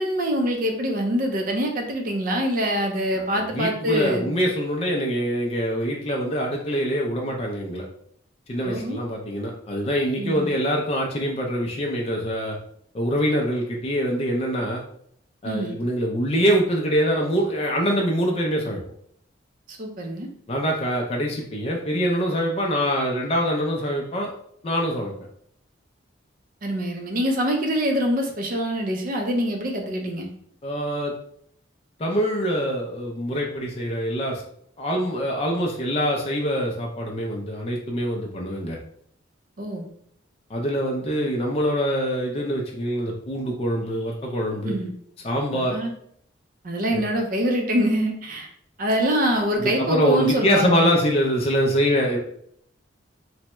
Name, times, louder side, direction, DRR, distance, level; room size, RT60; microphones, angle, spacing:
voice 1, 0.0-4.2 8.6-9.0 10.2-10.5 15.5-15.8 19.7-20.3 26.6-30.3 39.6-39.9 44.6-44.9 45.5-45.9 46.6-48.5 48.8-50.9, equal, 45° right, 2 dB, 0.5 m, -24 dB
voice 2, 3.3-7.9 8.5-12.6 12.9-14.8 15.4-18.8 20.5-24.3 24.6-25.1 30.6-31.1 32.0-34.4 34.8-38.8 40.5-44.8 45.2-45.8 46.9-47.0 49.6-52.2, equal, 30° left, -1 dB, 0.4 m, -24 dB
3.3 x 2.1 x 2.9 m, 0.66 s
head